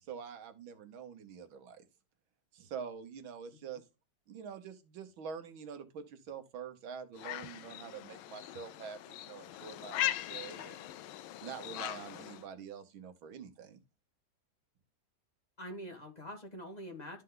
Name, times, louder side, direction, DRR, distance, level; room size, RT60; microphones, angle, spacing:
voice 1, 0.1-1.9 2.5-3.8 4.3-10.9 11.4-13.8, right 6 dB, 90° right, 1.9 m, -46 dB
sound 1, 7.2-12.5, left 14 dB, 85° left, 1.4 m, -40 dB
voice 2, 15.6-17.2, equal, 20° left, 2.0 m, -45 dB
12.5 x 4.5 x 3.8 m
omnidirectional pair, 2.1 m